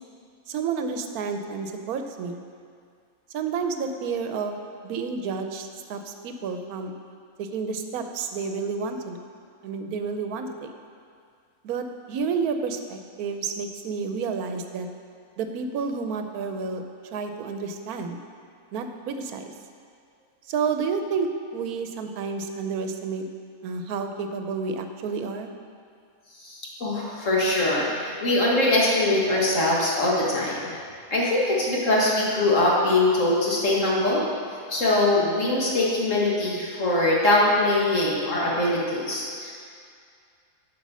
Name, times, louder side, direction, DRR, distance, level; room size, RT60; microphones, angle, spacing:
voice 1, 0.5-2.4 3.3-4.5 4.8-6.9 7.4-9.2 9.6-10.7 11.6-14.9 15.4-16.8 17.1-18.2 18.7-19.5 20.5-23.2 23.6-25.5, right 5 dB, 85° right, 6 dB, 1.1 m, -30 dB
voice 2, 26.4-30.7 31.1-34.2 34.7-39.5, left 2 dB, 60° left, -5 dB, 1.9 m, -22 dB
8.2 x 5.1 x 6.1 m, 2.3 s
omnidirectional pair, 1.5 m